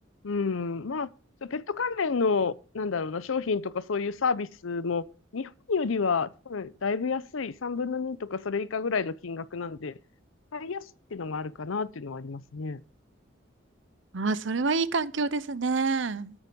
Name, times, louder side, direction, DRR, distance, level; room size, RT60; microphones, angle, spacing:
voice 1, 0.2-1.1 1.4-5.1 5.3-9.9 10.5-10.9 11.1-12.8, left 5 dB, 80° left, 0.6 m, -30 dB
voice 2, 14.1-16.3, right 4 dB, 65° right, 0.7 m, -27 dB
9.7 x 9.2 x 5.2 m
head